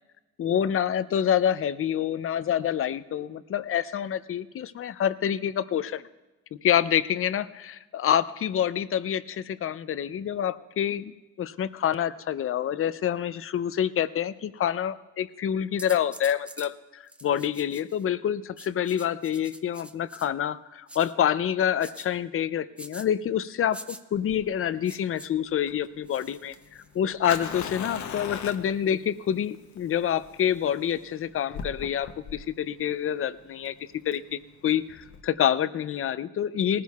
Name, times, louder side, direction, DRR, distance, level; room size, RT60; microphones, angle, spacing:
voice 1, 0.4-6.0 6.6-16.7 17.2-26.5 26.9-33.7 34.1-36.8, left 9 dB, 45° left, 15 dB, 0.5 m, -27 dB
sound 1, 15.8-16.7 17.1-18.0 18.6-20.3 20.9-21.1 21.8-22.1 22.8-23.1 23.7-24.0 24.8-25.3 26.1-27.0 27.6-28.1, right 1 dB, 5° right, 0.6 m, -45 dB
Fire, 24.1-35.2, left 7 dB, 70° left, 0.9 m, -40 dB
19.5 x 14.5 x 2.4 m, 1.1 s
cardioid pair, 90°, 30 cm